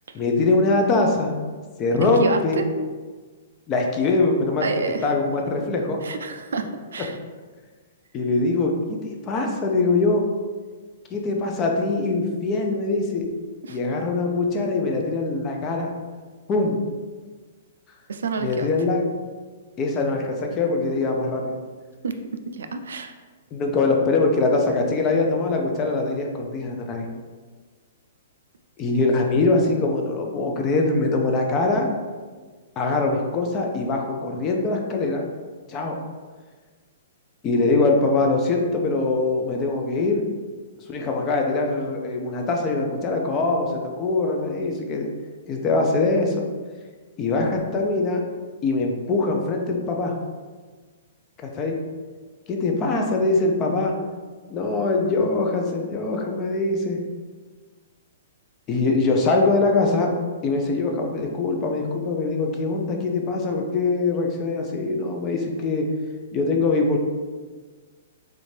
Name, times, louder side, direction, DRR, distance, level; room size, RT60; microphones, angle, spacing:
voice 1, 0.1-1.4 1.8-2.6 3.7-4.7 5.0-6.0 8.1-9.0 9.2-10.2 11.1-13.3 13.7-15.9 16.5-16.8 18.4-19.0 19.8-21.6 23.5-27.1 28.8-31.9 32.8-35.2 35.7-36.0 37.4-40.2 40.9-45.1 45.5-46.4 47.2-48.2 48.6-50.2 51.4-51.8 52.5-53.9 54.5-57.0 58.7-60.1 60.4-65.9 66.3-67.0, left 3 dB, 25° left, 2 dB, 0.5 m, -22 dB
voice 2, 2.0-2.7 4.6-5.1 6.0-7.2 13.6-13.8 18.1-18.7 22.0-22.2 22.5-23.1, right 4 dB, 80° right, 7 dB, 0.3 m, -28 dB
3.3 x 2.5 x 3.2 m, 1.4 s
hypercardioid pair, 135°, 0 cm